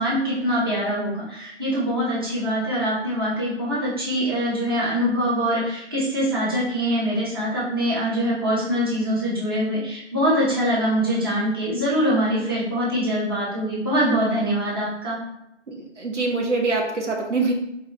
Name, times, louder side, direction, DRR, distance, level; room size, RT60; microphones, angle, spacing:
voice 1, 0.0-15.2, equal, 20° right, -8 dB, 1.0 m, -23 dB
voice 2, 15.7-17.5, right 3 dB, 80° right, 0 dB, 1.2 m, -24 dB
4.1 x 2.8 x 3.9 m, 0.83 s
figure-of-eight pair, 165°, 36 cm